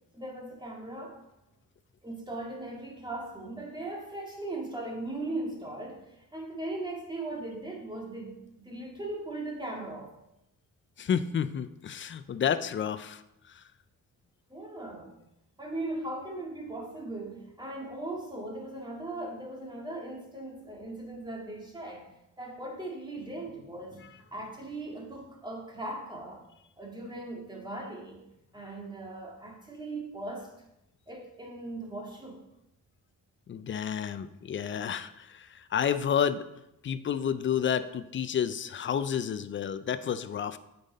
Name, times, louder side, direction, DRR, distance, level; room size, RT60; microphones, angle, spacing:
voice 1, 0.1-1.2 2.0-10.1 14.5-15.1 15.6-22.1 22.4-26.5 26.8-28.2 28.5-30.5 31.1-32.4, right 2 dB, 15° right, -1 dB, 1.9 m, -39 dB
voice 2, 11.0-13.2 13.5-13.6 33.5-36.5 36.8-40.6, left 8 dB, 35° left, 13 dB, 0.4 m, -30 dB
8.7 x 5.6 x 4.2 m, 0.87 s
cardioid pair, 110°, 34 cm